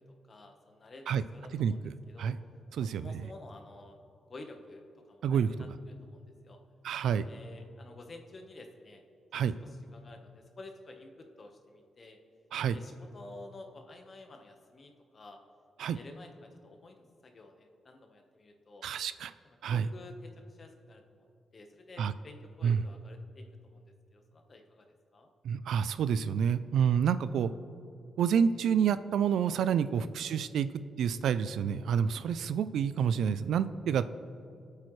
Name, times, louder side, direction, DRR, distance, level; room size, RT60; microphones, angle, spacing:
voice 1, 0.1-2.3 2.8-4.0 4.3-6.6 7.2-9.0 9.6-12.2 12.7-15.4 15.9-18.9 19.4-25.3 32.0-32.3, left 2 dB, 40° left, 4 dB, 1.2 m, -51 dB
voice 2, 6.8-7.3 9.3-9.6 12.5-12.8 15.8-16.0 18.8-19.3 19.6-19.9 22.0-22.1 22.6-22.8 25.4-27.5 28.2-30.7 31.0-34.1, right 7 dB, 80° right, 14 dB, 0.4 m, -28 dB
24.0 x 8.4 x 3.3 m, 2.5 s
cardioid pair, 110°, 0 cm